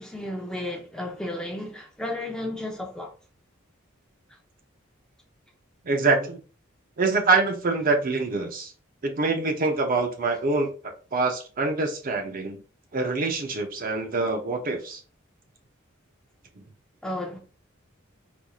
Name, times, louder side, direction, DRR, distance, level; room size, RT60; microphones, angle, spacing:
voice 1, 0.0-3.1 17.0-17.4, left 1 dB, 5° left, 0.6 m, -33 dB
voice 2, 5.8-6.4 7.0-8.7 9.0-10.7 11.1-12.6 12.9-15.0, right 3 dB, 45° right, 0.6 m, -25 dB
4.4 x 2.6 x 2.3 m
head